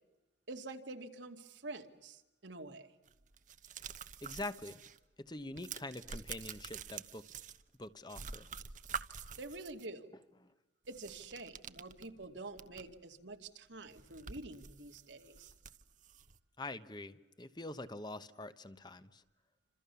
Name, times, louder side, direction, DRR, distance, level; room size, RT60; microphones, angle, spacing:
voice 1, 0.5-2.9 9.4-10.1 10.9-15.5, right 2 dB, 80° right, 5 dB, 2.5 m, -47 dB
sound 1, 3.1-5.0 5.3-7.8 8.1-9.9 10.9-13.0 13.3-13.4 13.8-16.4, right 6 dB, 45° right, 1.1 m, -47 dB
voice 2, 4.2-4.8 5.2-7.3 7.8-8.5 10.4-10.5 16.6-19.2, left 2 dB, 25° left, 12 dB, 1.1 m, -45 dB
29.0 x 27.0 x 7.1 m, 0.97 s
head